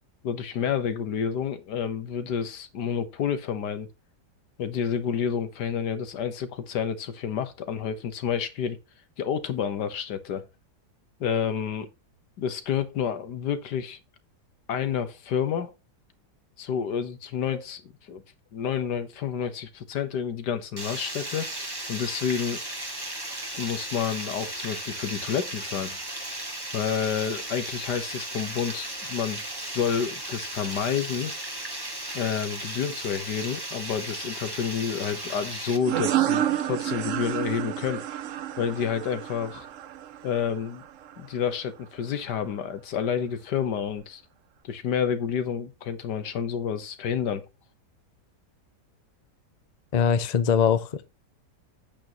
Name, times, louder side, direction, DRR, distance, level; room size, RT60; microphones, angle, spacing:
voice 1, 0.2-3.9 4.6-8.8 9.2-10.5 11.2-11.9 12.4-14.0 14.7-15.7 16.6-18.2 18.5-21.5 21.9-22.6 23.6-26.0 26.7-31.3 32.1-38.0 38.6-39.7 40.2-40.8 41.2-44.2 44.6-47.5, left 7 dB, 85° left, 1.7 m, -29 dB
Water, 20.8-35.8, right 1 dB, 15° right, 1.6 m, -36 dB
sound 1, 35.8-41.2, right 12 dB, 65° right, 0.8 m, -29 dB
voice 2, 49.9-51.1, left 7 dB, 40° left, 0.6 m, -22 dB
8.6 x 8.4 x 2.9 m
omnidirectional pair, 1.8 m